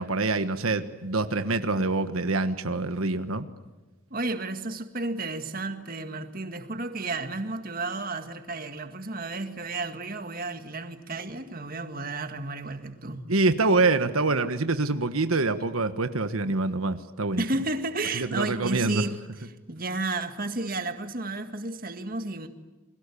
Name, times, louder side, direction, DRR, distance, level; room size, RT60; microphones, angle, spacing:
voice 1, 0.0-3.5 13.3-17.4 18.1-19.0, right 3 dB, 90° right, 9 dB, 1.4 m, -25 dB
voice 2, 4.1-13.3 17.4-19.2 19.7-22.5, right 2 dB, 45° right, 7 dB, 1.9 m, -32 dB
30.0 x 22.0 x 8.5 m, 1.1 s
head